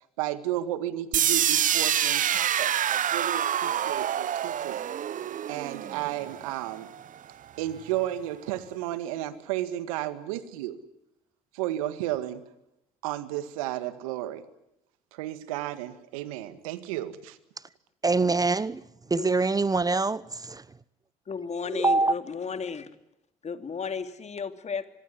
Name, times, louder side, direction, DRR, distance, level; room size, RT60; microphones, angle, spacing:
voice 1, 0.2-4.8 5.5-6.9 7.6-10.8 11.5-12.4 13.0-14.4 15.1-17.4, right 13 dB, 80° right, 1.9 m, -33 dB
sound 1, 1.1-7.1, right 10 dB, 50° right, 1.0 m, -27 dB
voice 2, 18.0-18.8 19.1-20.6 21.7-22.2, right 3 dB, 20° right, 1.0 m, -24 dB
voice 3, 21.3-22.9 23.4-24.9, left 5 dB, 40° left, 2.7 m, -33 dB
25.5 x 21.5 x 9.8 m
hypercardioid pair, 55°, 17 cm